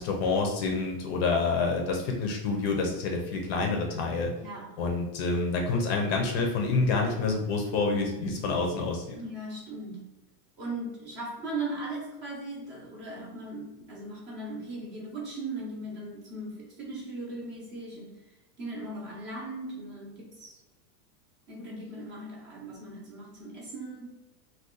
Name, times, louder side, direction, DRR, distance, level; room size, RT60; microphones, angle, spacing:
voice 1, 0.0-4.3 4.8-9.1, left 3 dB, 40° left, 2 dB, 0.5 m, -28 dB
voice 2, 4.4-4.8 9.2-10.1 10.6-20.6 21.5-24.1, right 2 dB, 25° right, -3 dB, 0.6 m, -38 dB
2.6 x 2.3 x 3.6 m, 0.99 s
supercardioid pair, 155°, 48 cm